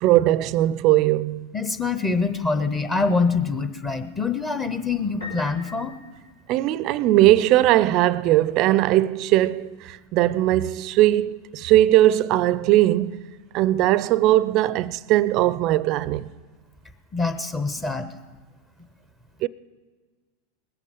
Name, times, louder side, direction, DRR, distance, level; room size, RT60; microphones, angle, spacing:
voice 1, 0.0-1.5 6.5-13.2 13.5-16.3 19.4-19.5, right 15 dB, 50° right, 0.4 m, -19 dB
voice 2, 1.5-5.9 17.1-18.1, left 4 dB, 20° left, 0.8 m, -25 dB
Piano, 5.2-7.0, left 2 dB, 85° left, 4.5 m, -41 dB
20.0 x 8.3 x 5.4 m
hypercardioid pair, 100°, 0 cm